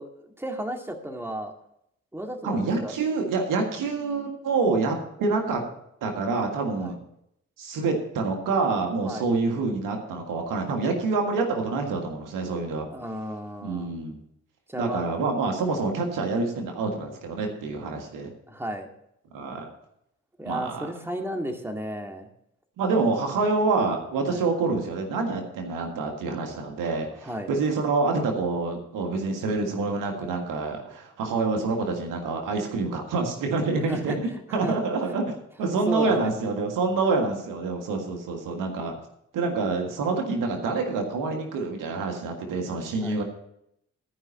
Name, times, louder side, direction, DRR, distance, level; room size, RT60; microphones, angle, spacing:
voice 1, 0.0-1.5 2.1-2.9 6.8-6.9 9.0-9.3 12.9-13.9 14.7-15.1 18.5-18.9 20.4-22.3 24.3-24.4 27.2-27.5 33.9-34.8 35.9-36.3 43.0-43.2, right 1 dB, 5° right, 4 dB, 2.0 m, -33 dB
voice 2, 2.4-5.6 6.0-7.0 7.6-12.9 13.6-14.2 14.8-18.3 19.3-19.7 20.5-20.9 22.8-34.1 34.5-35.3 35.6-39.0 39.3-43.2, right 3 dB, 85° right, 3 dB, 1.8 m, -27 dB
13.5 x 5.4 x 7.0 m, 0.75 s
supercardioid pair, 45°, 32 cm